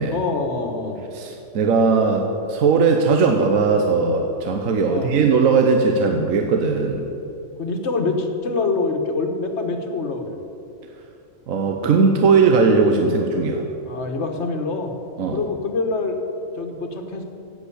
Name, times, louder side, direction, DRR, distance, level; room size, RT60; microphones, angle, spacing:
voice 1, 0.1-1.0 4.9-5.2 7.6-10.4 13.8-14.9 15.3-16.2 16.5-17.2, left 3 dB, 55° left, 5 dB, 1.5 m, -25 dB
voice 2, 1.1-7.1 11.5-13.6 15.2-15.4, right 4 dB, 75° right, 4 dB, 1.2 m, -18 dB
11.0 x 8.2 x 8.4 m, 2.7 s
omnidirectional pair, 1.4 m